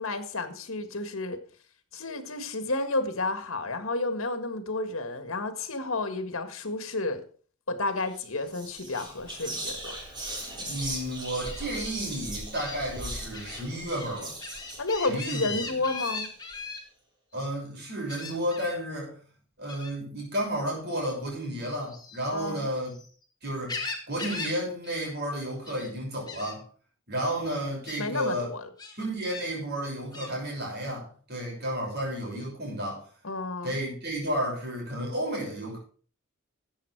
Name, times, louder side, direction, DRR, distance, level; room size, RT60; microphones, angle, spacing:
voice 1, 0.0-1.4 1.9-7.2 7.7-10.0 14.8-16.3 22.3-22.7 28.0-28.7 33.2-33.8, left 2 dB, 70° left, 9 dB, 1.8 m, -31 dB
Whispering, 8.1-8.2 8.5-16.6, right 1 dB, 20° right, 3.5 m, -39 dB
voice 2, 10.7-14.4 15.1-15.7 17.3-19.1 19.6-22.9 23.4-23.8 24.1-26.6 27.1-28.5 29.0-33.0 33.6-35.8, right 1 dB, 50° right, -1 dB, 6.5 m, -32 dB
Gull seagull, 11.4-11.6 12.5-12.8 13.3-13.6 14.0-16.8 18.1-18.8 19.7-20.0 21.8-23.1 23.4-24.6 24.8-25.1 25.4-25.9 26.3-26.5 27.3-27.4 27.8-28.0 28.8-29.5 30.1-30.3, left 4 dB, 20° left, 2.1 m, -38 dB
13.5 x 8.5 x 4.7 m, 0.41 s
head